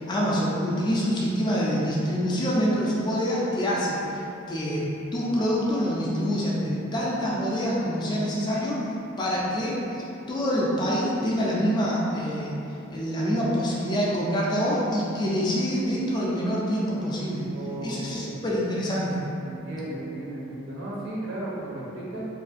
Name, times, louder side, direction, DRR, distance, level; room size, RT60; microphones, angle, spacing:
voice 1, 0.0-4.2 4.5-8.9 9.2-12.6 12.9-17.5 17.8-19.2, equal, 20° left, -5 dB, 0.3 m, -26 dB
voice 2, 17.5-18.5 19.4-22.2, right 1 dB, 60° right, -6 dB, 0.6 m, -35 dB
2.5 x 2.3 x 2.4 m, 2.9 s
head